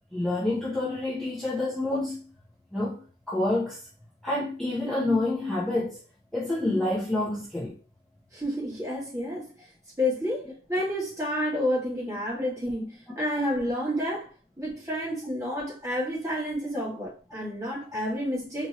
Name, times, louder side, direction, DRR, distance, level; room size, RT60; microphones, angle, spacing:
voice 1, 0.1-2.3 2.7-3.8 4.2-6.0 6.3-7.8, left 2 dB, ahead, 0.9 m, -28 dB
voice 2, 8.3-9.5 10.0-12.9 13.2-14.3 14.6-18.7, equal, 15° right, 2.2 m, -30 dB
4.3 x 2.9 x 3.0 m
head